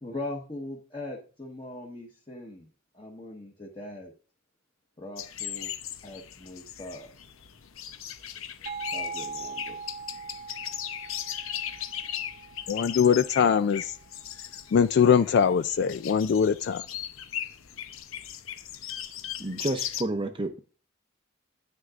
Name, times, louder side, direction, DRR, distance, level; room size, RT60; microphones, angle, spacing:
voice 1, 0.0-2.7 2.9-4.1 5.0-5.7 6.0-7.1 8.9-9.8, left 2 dB, 25° left, 1.2 m, -40 dB
sound 1, 5.2-20.0, left 10 dB, 90° left, 0.8 m, -38 dB
sound 2, 8.7-14.1, right 5 dB, 45° right, 1.0 m, -41 dB
voice 2, 12.7-13.9 14.7-16.8, left 7 dB, 55° left, 0.3 m, -22 dB
voice 3, 19.4-20.6, right 2 dB, 25° right, 0.6 m, -30 dB
9.6 x 9.2 x 2.5 m
head